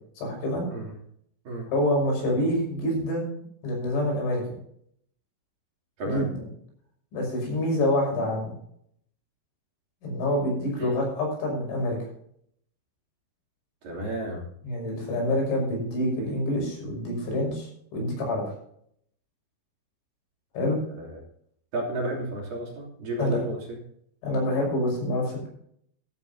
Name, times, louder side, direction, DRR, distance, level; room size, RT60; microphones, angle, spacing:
voice 1, 0.2-0.6 1.7-3.3 3.6-4.6 6.0-6.4 7.1-8.5 10.0-12.0 14.6-18.5 20.5-20.8 23.2-23.4 24.2-25.5, left 1 dB, 70° left, -1 dB, 8.2 m, -27 dB
voice 2, 13.8-14.4 21.0-21.2 21.7-23.8, right 1 dB, 50° right, -2 dB, 4.0 m, -32 dB
15.5 x 13.5 x 2.7 m, 0.67 s
omnidirectional pair, 5.8 m